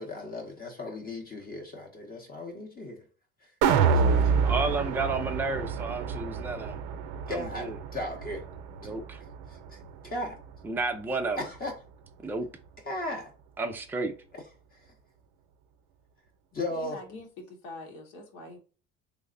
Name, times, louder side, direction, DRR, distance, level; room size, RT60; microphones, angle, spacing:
voice 1, 0.0-3.0 3.4-3.5 3.9-4.6 7.3-8.4 8.8-8.9 9.5-10.4 11.4-11.7 12.8-13.3 14.3-14.4 14.7-14.9 16.5-17.2, left 1 dB, 25° left, 0.8 m, -37 dB
sound 1, 3.6-9.8 10.2-10.3, right 6 dB, 80° right, 0.6 m, -27 dB
voice 2, 4.4-6.8 7.3-7.7 8.8-9.2 10.6-11.4 12.2-12.5 13.6-14.1, right 3 dB, 5° right, 0.4 m, -31 dB
voice 3, 16.8-18.6, left 2 dB, 80° left, 1.1 m, -44 dB
3.2 x 2.0 x 3.7 m
supercardioid pair, 100°, 34 cm